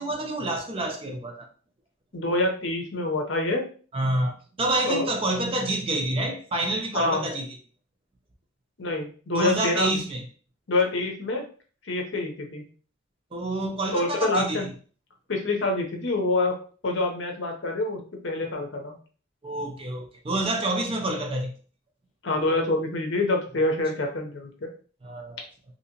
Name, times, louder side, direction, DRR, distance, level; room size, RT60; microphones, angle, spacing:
voice 1, 0.0-1.5 3.9-7.5 9.3-10.2 13.3-14.7 19.4-21.5 25.0-25.4, right 2 dB, 25° right, 0.5 m, -28 dB
voice 2, 2.1-3.6 4.9-5.1 6.9-7.2 8.8-10.0 10.7-11.4 11.8-12.6 13.9-14.7 15.3-16.6 16.8-19.0 22.2-24.7, left 2 dB, 60° left, 0.7 m, -26 dB
2.8 x 2.8 x 2.8 m
head